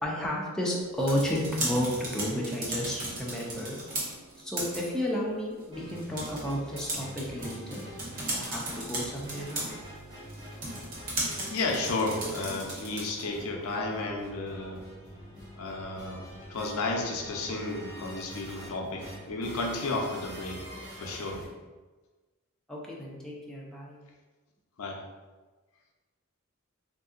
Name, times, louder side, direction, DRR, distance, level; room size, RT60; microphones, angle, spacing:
voice 1, 0.0-3.8 4.4-7.8 8.2-9.7 22.7-24.0, equal, 5° left, -4 dB, 0.4 m, -32 dB
sound 1, 0.8-13.3, right 1 dB, 40° right, 0.8 m, -37 dB
sound 2, 5.7-21.4, equal, 20° right, 1.0 m, -46 dB
voice 2, 11.5-14.8 15.6-16.2 16.5-20.6 21.0-21.4 24.8-25.0, left 2 dB, 75° left, 1 dB, 0.5 m, -32 dB
3.5 x 2.6 x 2.4 m, 1.3 s
head